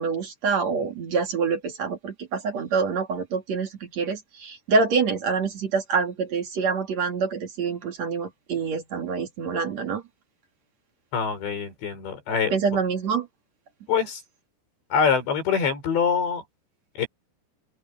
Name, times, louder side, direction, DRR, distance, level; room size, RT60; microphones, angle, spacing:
voice 1, 0.0-10.0 12.5-13.3, right 5 dB, 45° right, 2.9 m, -26 dB
voice 2, 11.1-12.5 13.9-14.2 14.9-16.4 17.0-17.1, left 6 dB, 80° left, 7.4 m, -24 dB
open air
omnidirectional pair, 5.1 m